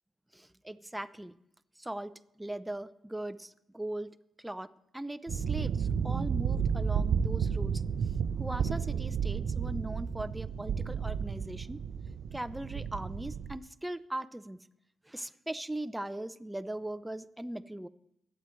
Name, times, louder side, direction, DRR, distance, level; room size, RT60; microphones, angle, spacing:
voice 1, 0.3-1.4 1.8-7.8 8.4-11.8 12.3-14.7 15.0-17.9, right 1 dB, 10° right, 12 dB, 0.6 m, -39 dB
sound 1, 5.3-13.6, right 7 dB, 70° right, 0.5 m, -32 dB
24.0 x 9.1 x 3.2 m, 0.77 s
cardioid pair, 70°, 0 cm